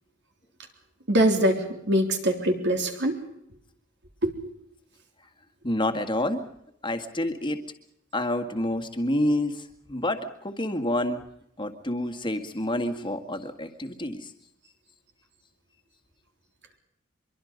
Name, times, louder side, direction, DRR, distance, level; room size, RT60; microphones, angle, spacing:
voice 1, 1.1-3.2 4.2-4.3, right 1 dB, 60° right, 4 dB, 3.7 m, -23 dB
voice 2, 5.6-6.4 6.8-7.6 8.1-11.2 11.6-14.3, left 1 dB, 25° left, 8 dB, 2.0 m, -28 dB
25.0 x 23.0 x 5.3 m, 0.75 s
head